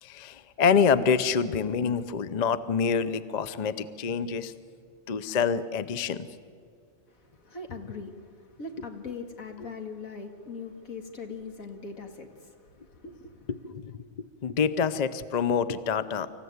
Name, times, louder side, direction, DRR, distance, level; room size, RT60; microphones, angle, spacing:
voice 1, 0.0-4.5 5.1-6.3 7.7-7.8 9.1-9.2 9.6-9.7 13.0-13.1 13.5-13.9 14.4-16.3, left 6 dB, 40° left, 14 dB, 0.6 m, -26 dB
voice 2, 7.1-13.5, left 4 dB, 80° left, 4 dB, 2.3 m, -41 dB
26.0 x 15.0 x 9.5 m, 2.1 s
omnidirectional pair, 1.4 m